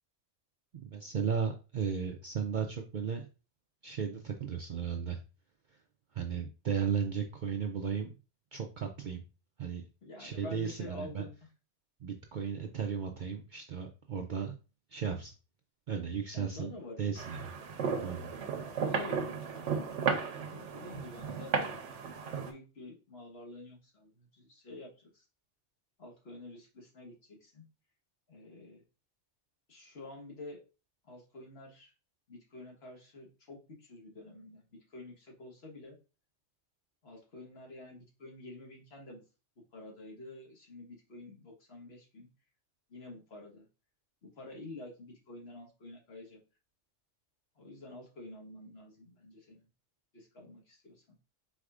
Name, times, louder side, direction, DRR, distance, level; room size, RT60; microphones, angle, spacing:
voice 1, 0.7-3.3 3.8-5.2 6.1-8.1 8.5-9.2 9.6-9.8 10.2-11.2 12.0-14.6 14.9-15.3 15.9-16.7 17.0-17.5 18.0-18.3, right 7 dB, 55° right, 4 dB, 0.5 m, -35 dB
voice 2, 10.0-11.4 16.3-17.1 18.8-19.9 20.4-21.8 22.4-25.2 26.0-27.6 28.3-28.8 29.7-30.6 31.0-31.9 32.3-34.6 34.9-36.0 37.0-39.2 39.7-42.3 42.9-43.7 44.2-46.4 47.6-49.7 50.1-51.2, left 2 dB, 60° left, 0 dB, 1.5 m, -48 dB
sound 1, 17.2-22.5, right 6 dB, 85° right, 1.1 m, -34 dB
4.7 x 4.1 x 2.4 m, 0.32 s
omnidirectional pair, 1.2 m